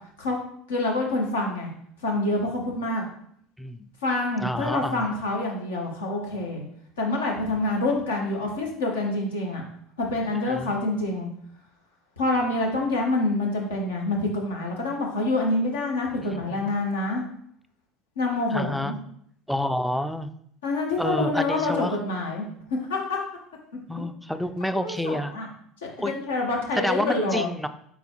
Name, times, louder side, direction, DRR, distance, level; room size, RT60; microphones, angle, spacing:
voice 1, 0.7-1.7 2.0-3.1 4.0-6.6 7.0-9.6 10.0-11.3 12.2-17.2 18.2-19.0 20.6-22.4 22.9-23.2 24.8-25.5 25.8-27.5, left 2 dB, 75° left, -1 dB, 1.0 m, -26 dB
voice 2, 4.4-5.0 10.5-10.7 16.3-16.6 18.5-19.0 19.5-20.3 21.0-22.0 23.9-25.3 26.0-26.1 26.8-27.7, left 1 dB, ahead, 9 dB, 0.3 m, -28 dB
4.0 x 3.4 x 2.9 m, 0.67 s
figure-of-eight pair, 70°, 0 cm